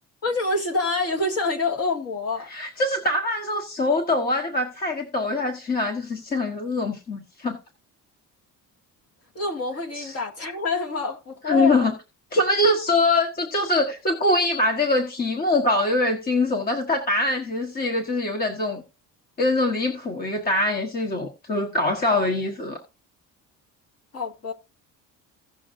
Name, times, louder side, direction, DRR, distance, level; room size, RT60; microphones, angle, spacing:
voice 1, 0.2-2.5 9.3-11.9 24.1-24.5, left 3 dB, 45° left, 2.1 m, -26 dB
voice 2, 2.5-7.6 10.0-10.1 11.5-11.9 12.3-18.8 19.4-22.8, left 2 dB, 30° left, 1.4 m, -23 dB
16.5 x 6.4 x 2.6 m
cardioid pair, 155°, 33 cm